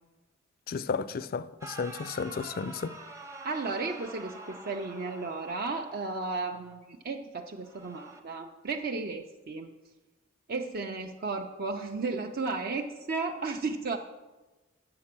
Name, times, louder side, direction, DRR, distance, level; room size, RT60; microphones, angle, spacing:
voice 1, 0.7-2.9, left 5 dB, 45° left, 0.3 m, -33 dB
sound 1, 1.6-6.7 7.6-8.2, right 2 dB, 15° right, 0.7 m, -46 dB
voice 2, 3.4-9.7 10.5-14.0, right 3 dB, 45° right, 0.5 m, -34 dB
8.6 x 6.6 x 5.9 m
head